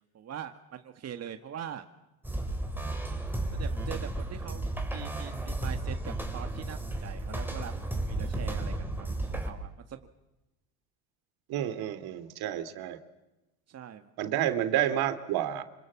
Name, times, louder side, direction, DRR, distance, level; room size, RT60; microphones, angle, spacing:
voice 1, 0.0-1.9 3.5-7.7 8.0-10.1 13.7-14.4, right 9 dB, 40° right, 8 dB, 1.8 m, -43 dB
sound 1, 2.2-9.5, right 2 dB, 5° right, 5.0 m, -33 dB
voice 2, 11.5-13.0 14.2-15.6, right 11 dB, 60° right, 11 dB, 2.8 m, -30 dB
27.5 x 26.5 x 7.4 m, 0.99 s
supercardioid pair, 95°, 41 cm